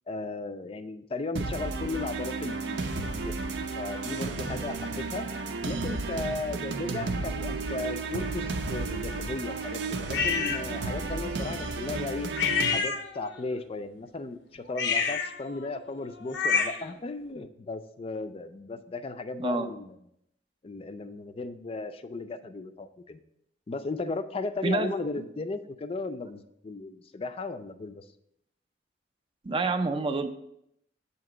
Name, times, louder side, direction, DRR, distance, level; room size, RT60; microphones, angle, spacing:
voice 1, 0.1-3.3 3.7-5.2 5.6-12.3 12.7-20.0 20.6-23.2 23.7-28.0, left 3 dB, 35° left, 9 dB, 0.4 m, -36 dB
sound 1, 1.4-12.8, right 3 dB, 75° right, 0.6 m, -33 dB
sound 2, 10.1-10.6 12.4-13.4 14.7-16.9, left 5 dB, 80° left, 0.6 m, -28 dB
voice 2, 29.4-30.3, right 3 dB, 30° right, 9 dB, 0.4 m, -27 dB
7.5 x 2.9 x 5.9 m, 0.77 s
head